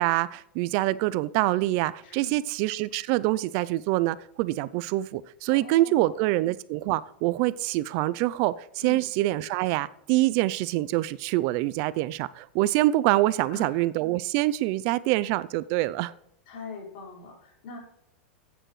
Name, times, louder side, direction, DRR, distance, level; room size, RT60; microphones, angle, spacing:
voice 1, 0.0-16.1, right 17 dB, 50° right, 18 dB, 0.5 m, -25 dB
voice 2, 2.0-2.4 5.5-6.2 8.8-9.0 13.5-13.8 16.5-17.8, left 4 dB, 60° left, -2 dB, 4.9 m, -42 dB
14.0 x 9.0 x 3.2 m, 0.78 s
supercardioid pair, 130°, 6 cm